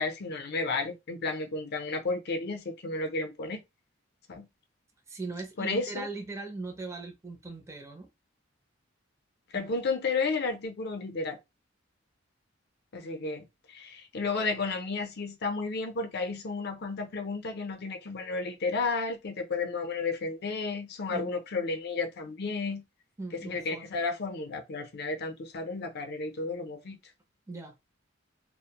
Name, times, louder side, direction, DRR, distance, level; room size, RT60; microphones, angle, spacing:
voice 1, 0.0-3.6 4.3-4.5 5.6-6.1 9.5-11.4 12.9-22.8 23.3-27.0, left 3 dB, 55° left, 0.5 m, -32 dB
voice 2, 5.1-8.1 9.5-9.7 21.1-21.3 23.2-23.9 27.5-27.7, right 3 dB, 15° right, 0.5 m, -39 dB
2.5 x 2.0 x 2.8 m
head